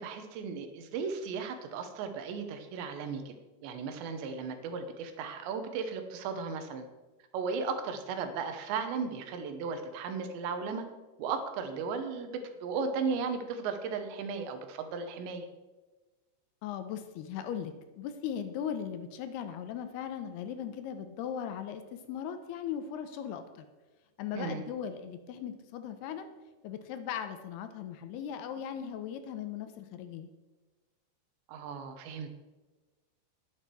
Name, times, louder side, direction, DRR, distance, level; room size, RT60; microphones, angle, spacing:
voice 1, 0.0-3.3 3.6-6.9 7.3-10.8 11.2-15.5 24.3-24.6 31.5-32.3, right 5 dB, 80° right, 7 dB, 3.4 m, -35 dB
voice 2, 16.6-23.7 24.2-26.3 26.6-30.3, left 8 dB, 75° left, 9 dB, 2.6 m, -38 dB
11.0 x 11.0 x 4.7 m, 1.2 s
omnidirectional pair, 5.1 m